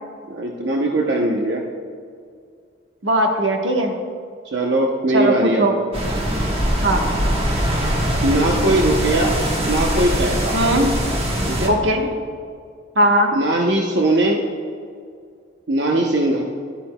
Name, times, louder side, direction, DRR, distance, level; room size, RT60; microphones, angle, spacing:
voice 1, 0.3-1.6 4.4-5.7 8.2-9.3 9.7-10.6 11.5-11.7 13.3-14.4 15.7-16.4, right 1 dB, 70° right, 0 dB, 0.8 m, -20 dB
voice 2, 3.0-3.9 5.1-5.7 6.8-7.0 10.5-10.9 11.7-12.1 12.9-13.3, right 1 dB, 90° right, 2 dB, 1.2 m, -18 dB
sound 1, 5.9-11.7, equal, 30° right, 1.3 m, -22 dB
13.0 x 11.5 x 2.2 m, 2.2 s
head